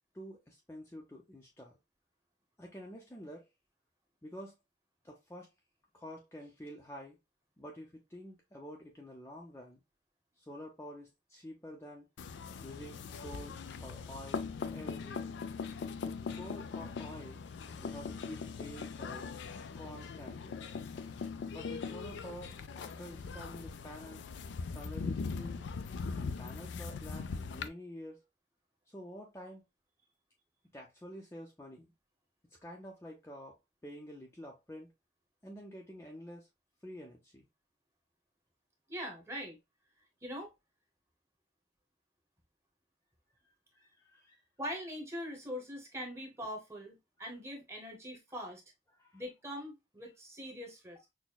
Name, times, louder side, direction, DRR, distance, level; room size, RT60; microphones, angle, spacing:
voice 1, 0.1-1.8 2.6-3.5 4.2-4.5 5.0-5.5 5.9-7.2 7.6-9.8 10.4-12.1 12.6-15.4 16.0-17.4 17.7-19.3 19.8-20.6 21.5-24.3 24.7-25.6 26.1-28.2 28.9-29.6 30.7-31.9 32.6-34.9 35.4-36.5 36.8-37.5 43.4-44.4 49.0-49.2, equal, 15° left, 0.5 m, -49 dB
sound 1, 12.2-27.7, left 5 dB, 75° left, 0.4 m, -40 dB
voice 2, 38.9-39.6 40.2-40.5 44.6-48.6 49.1-51.0, equal, 15° right, 1.0 m, -42 dB
6.0 x 2.1 x 2.2 m
head